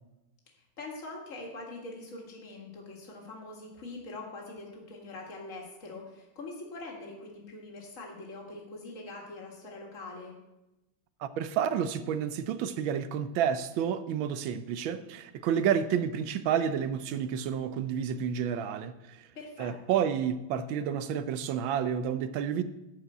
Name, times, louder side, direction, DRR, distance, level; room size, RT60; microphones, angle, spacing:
voice 1, 0.8-10.3 19.4-20.0, left 2 dB, 40° left, 2.2 m, -43 dB
voice 2, 11.2-19.2 19.6-22.6, right 8 dB, 80° right, 1.5 m, -30 dB
12.5 x 5.0 x 7.8 m
omnidirectional pair, 2.1 m